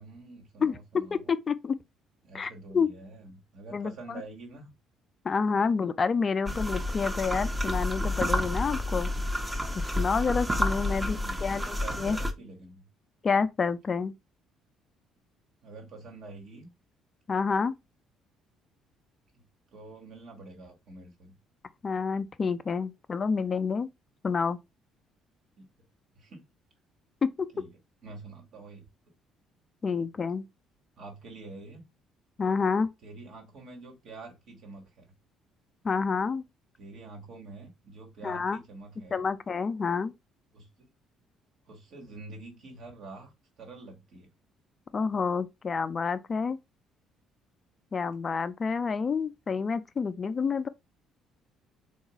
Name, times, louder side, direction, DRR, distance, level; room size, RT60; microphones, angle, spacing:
voice 1, 0.0-1.2 2.2-4.7 10.8-12.9 15.6-16.7 19.7-21.4 25.6-25.7 26.1-26.5 27.5-27.7 28.0-28.9 31.0-31.8 33.0-35.1 36.8-39.2 40.5-40.7 41.7-44.3, right 3 dB, 60° right, 1.3 m, -46 dB
voice 2, 0.6-1.8 2.3-2.9 3.7-4.2 5.2-9.1 9.7-12.2 13.2-14.1 17.3-17.7 21.8-23.9 24.2-24.6 27.2-27.5 29.8-30.4 32.4-32.9 35.8-36.4 38.2-38.6 39.1-40.1 44.9-46.6 47.9-50.7, left 5 dB, 40° left, 0.4 m, -28 dB
sound 1, 6.5-12.3, left 1 dB, 20° right, 0.7 m, -30 dB
3.7 x 2.4 x 2.8 m
hypercardioid pair, 55°, 0 cm